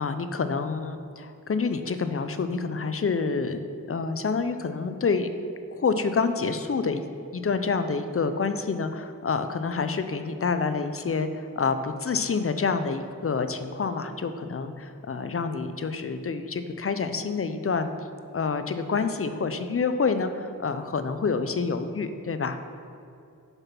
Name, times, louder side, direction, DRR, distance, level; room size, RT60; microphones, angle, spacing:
voice 1, 0.0-5.3 5.8-7.1 7.3-17.9 18.3-22.6, left 4 dB, 40° left, 9 dB, 0.5 m, -28 dB
6.7 x 5.8 x 5.9 m, 2.6 s
wide cardioid pair, 100°, 34 cm